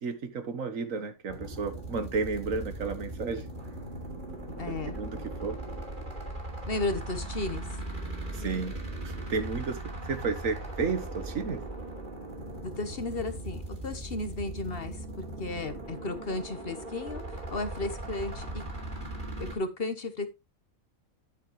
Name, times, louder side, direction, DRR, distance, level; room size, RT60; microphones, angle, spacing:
voice 1, 0.0-3.5 4.6-5.6 8.3-11.6, right 4 dB, 75° right, 1.7 m, -33 dB
sound 1, 1.3-19.6, right 1 dB, 35° right, 3.1 m, -39 dB
voice 2, 4.6-5.0 6.7-7.6 12.6-17.2 17.5-18.6 19.4-20.3, left 2 dB, 45° left, 1.4 m, -34 dB
10.0 x 8.4 x 3.2 m
omnidirectional pair, 1.4 m